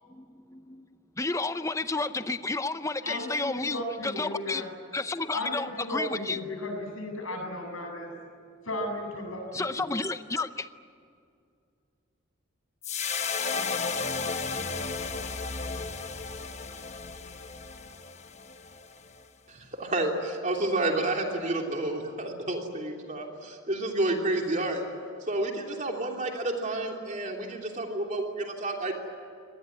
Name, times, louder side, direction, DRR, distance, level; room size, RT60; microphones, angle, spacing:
voice 1, 0.1-0.9 1.2-4.6 4.9-6.4 9.5-10.7, left 3 dB, 15° left, 11 dB, 0.6 m, -31 dB
voice 2, 3.0-4.7 5.3-8.1 8.6-9.8, left 1 dB, 75° left, 2 dB, 7.5 m, -35 dB
sound 1, 12.8-19.2, left 4 dB, 30° left, 1.1 m, -34 dB
voice 3, 19.5-24.8 25.3-28.9, right 2 dB, 35° right, 2 dB, 3.0 m, -30 dB
25.0 x 19.0 x 9.9 m, 2.4 s
head